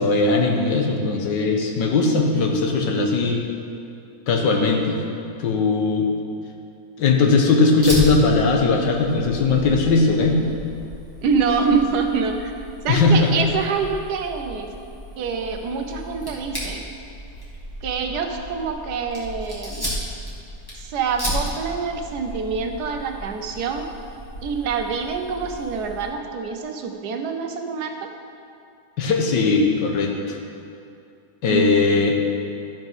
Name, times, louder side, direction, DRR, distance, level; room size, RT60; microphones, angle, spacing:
voice 1, 0.0-3.4 4.3-5.0 5.4-6.1 7.0-10.4 12.9-13.3 29.0-30.4 31.4-32.1, left 3 dB, 80° left, 2 dB, 1.7 m, -19 dB
Fire, 7.8-26.1, equal, 10° left, 1.8 m, -34 dB
voice 2, 11.2-12.5 12.8-14.7 15.2-16.8 17.8-19.9 20.8-23.9 24.4-28.1 31.5-31.7, right 5 dB, 70° right, 4 dB, 1.3 m, -25 dB
12.0 x 5.3 x 5.4 m, 2.5 s
omnidirectional pair, 1.9 m